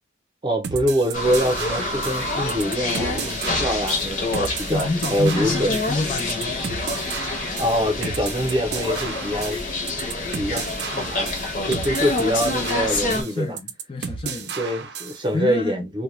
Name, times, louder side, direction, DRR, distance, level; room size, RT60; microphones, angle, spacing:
voice 1, 0.4-5.7 7.6-9.6 10.4-11.3 11.6-13.6 14.6-16.0, equal, 25° right, 0.7 m, -24 dB
sound 1, 0.6-15.2, right 6 dB, 65° right, 0.5 m, -33 dB
sound 2, 1.1-13.2, left 2 dB, 45° left, 0.8 m, -27 dB
voice 2, 4.7-6.7 13.1-14.6 15.3-15.9, left 3 dB, 30° left, 0.3 m, -28 dB
2.2 x 2.2 x 3.0 m
head